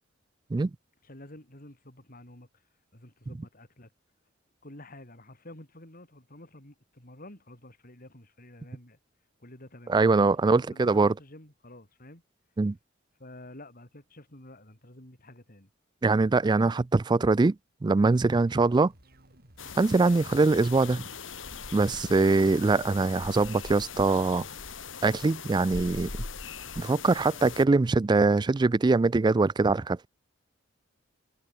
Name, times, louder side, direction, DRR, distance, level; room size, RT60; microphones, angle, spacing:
voice 1, 1.0-2.5 2.9-3.9 4.6-9.0 9.4-12.2 13.2-15.7, left 1 dB, 45° left, 5.4 m, -49 dB
voice 2, 9.9-11.1 12.6-12.8 16.0-17.6 17.8-18.9 19.8-21.0 21.7-24.5 25.0-26.1 26.8-30.1, right 3 dB, 20° right, 0.3 m, -23 dB
sound 1, 18.5-22.9, right 1 dB, 50° right, 4.7 m, -57 dB
sound 2, 19.6-27.6, left 5 dB, 65° left, 2.4 m, -40 dB
head